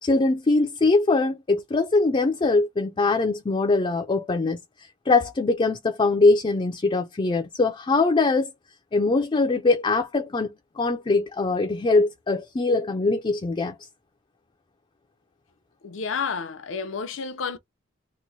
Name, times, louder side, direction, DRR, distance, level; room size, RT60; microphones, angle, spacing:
voice 1, 0.0-4.6 5.1-8.5 8.9-13.8, left 3 dB, 25° left, 0.4 m, -22 dB
voice 2, 15.8-17.6, left 5 dB, 85° left, 0.6 m, -30 dB
3.0 x 2.1 x 3.9 m
head